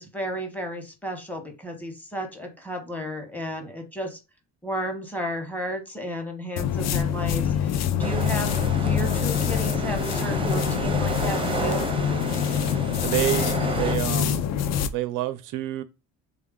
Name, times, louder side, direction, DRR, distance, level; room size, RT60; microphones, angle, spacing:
voice 1, 0.0-4.2 4.6-11.9, right 1 dB, 5° left, 0.9 m, -33 dB
sound 1, 6.6-14.9, left 9 dB, 55° left, 0.4 m, -25 dB
sound 2, 8.0-14.0, right 2 dB, 15° right, 0.5 m, -31 dB
voice 2, 13.0-14.4 14.9-15.8, right 14 dB, 80° right, 0.5 m, -28 dB
3.6 x 2.3 x 3.6 m
cardioid pair, 130°, 31 cm